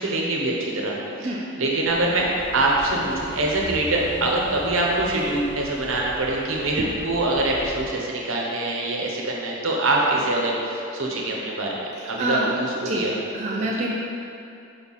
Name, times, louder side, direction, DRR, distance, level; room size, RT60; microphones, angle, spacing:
voice 1, 0.0-2.3 2.5-11.8 12.1-13.1 13.7-13.8, right 2 dB, 75° right, -2 dB, 1.1 m, -24 dB
sound 1, 1.8-7.9, equal, 20° left, 0.9 m, -39 dB
voice 2, 12.2-12.5 12.9-13.0 13.3-13.9, right 1 dB, 30° right, -4 dB, 0.4 m, -25 dB
5.6 x 4.1 x 5.7 m, 2.7 s
head